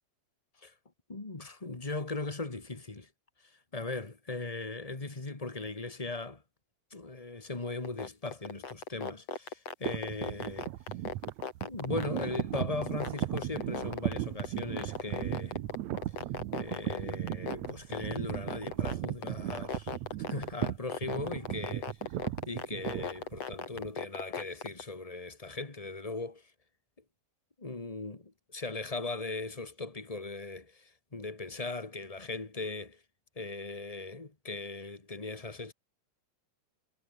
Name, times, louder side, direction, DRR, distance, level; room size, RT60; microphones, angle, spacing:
voice 1, 1.1-3.1 3.4-6.4 6.9-10.7 11.6-15.6 16.5-20.0 20.3-22.0 22.5-26.5 27.6-33.0 33.3-35.7, left 3 dB, 65° left, 0.3 m, -39 dB
sound 1, 7.8-24.8, left 6 dB, 45° left, 3.6 m, -36 dB
sound 2, 9.9-23.9, right 14 dB, 70° right, 1.8 m, -36 dB
omnidirectional pair, 4.2 m